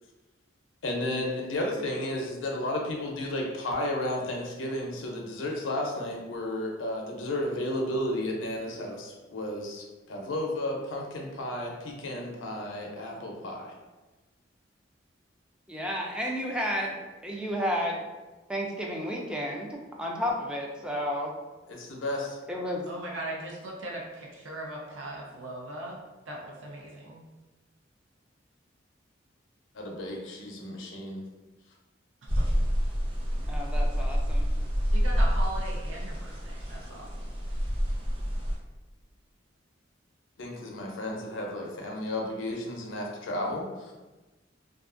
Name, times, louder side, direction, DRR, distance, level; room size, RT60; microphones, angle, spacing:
voice 1, 0.8-13.7 21.7-22.4 29.7-31.2 40.4-43.9, left 1 dB, 80° left, 0 dB, 0.5 m, -33 dB
voice 2, 15.7-17.0 17.2-18.0 18.5-21.3 22.5-22.8 33.5-34.5, equal, 5° right, -1 dB, 0.3 m, -31 dB
voice 3, 22.9-27.2 32.2-32.5 34.8-37.1, right 1 dB, 90° right, -2 dB, 0.5 m, -39 dB
sound 1, 32.3-38.5, equal, 30° right, 0.7 m, -28 dB
2.5 x 2.3 x 2.4 m, 1.1 s
head